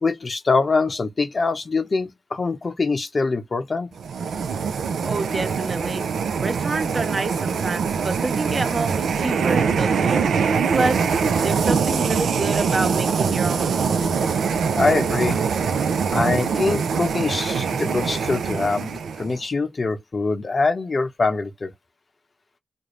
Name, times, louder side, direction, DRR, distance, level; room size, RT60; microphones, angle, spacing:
voice 1, 0.0-3.9 14.7-15.4 16.1-21.7, left 3 dB, 50° left, 0.8 m, -23 dB
sound 1, 4.0-19.4, right 6 dB, 90° right, 0.3 m, -23 dB
voice 2, 5.0-6.0 6.4-10.2 10.7-11.0 11.4-14.3, right 3 dB, 50° right, 0.7 m, -27 dB
2.5 x 2.0 x 3.0 m
cardioid pair, 45°, 0 cm